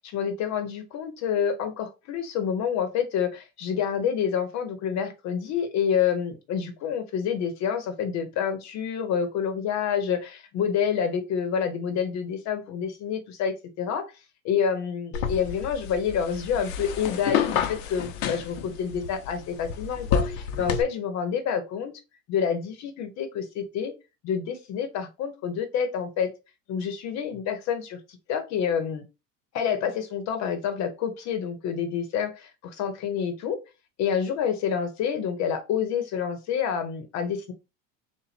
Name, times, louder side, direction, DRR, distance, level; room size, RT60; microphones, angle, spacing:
voice 1, 0.1-14.1 14.4-21.9 22.3-23.9 24.2-26.3 26.7-28.0 28.3-29.0 29.5-33.6 34.0-37.5, left 7 dB, 45° left, 1.1 m, -28 dB
sound 1, 15.1-20.8, left 7 dB, 85° left, 0.9 m, -29 dB
4.2 x 2.5 x 4.2 m
supercardioid pair, 145°, 39 cm